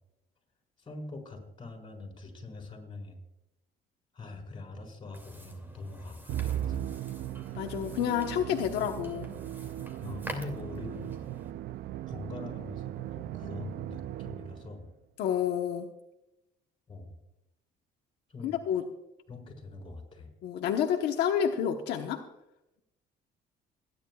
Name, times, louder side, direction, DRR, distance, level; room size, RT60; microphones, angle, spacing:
voice 1, 0.8-3.2 4.1-6.8 10.0-11.2 12.1-14.9 16.9-17.2 18.3-18.5 19.3-20.3, left 2 dB, 30° left, 1 dB, 5.0 m, -43 dB
sound 1, 5.1-11.5, equal, 10° right, 2.6 m, -47 dB
Musical instrument, 6.3-14.8, right 12 dB, 70° right, 0.5 m, -38 dB
voice 2, 7.5-9.3 15.2-15.9 18.4-18.8 20.4-22.2, left 9 dB, 85° left, 3 dB, 1.1 m, -29 dB
29.0 x 10.5 x 2.4 m, 0.88 s
cardioid pair, 110°, 17 cm